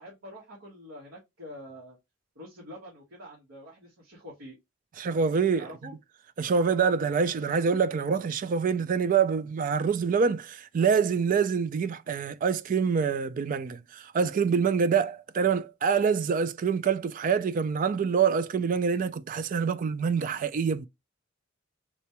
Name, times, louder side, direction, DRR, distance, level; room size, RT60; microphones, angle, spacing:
voice 1, 0.0-2.0 2.3-4.6 5.6-5.9, equal, 90° right, 1.3 m, -46 dB
voice 2, 5.0-5.7 6.4-20.9, right 6 dB, 45° right, 0.3 m, -26 dB
4.1 x 2.2 x 2.9 m
head